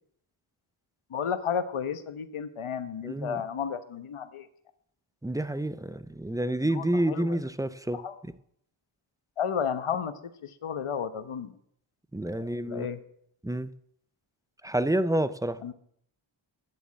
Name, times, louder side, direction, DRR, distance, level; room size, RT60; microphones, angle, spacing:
voice 1, 1.1-4.5 6.6-7.4 7.9-8.1 9.4-10.1 10.4-11.5 12.4-13.0 15.6-15.7, left 7 dB, 80° left, 1.1 m, -32 dB
voice 2, 3.0-3.4 5.2-8.3 12.1-12.9 13.4-13.7 14.6-15.6, right 1 dB, 5° right, 0.5 m, -29 dB
9.7 x 6.9 x 8.4 m
wide cardioid pair, 80°, 50 cm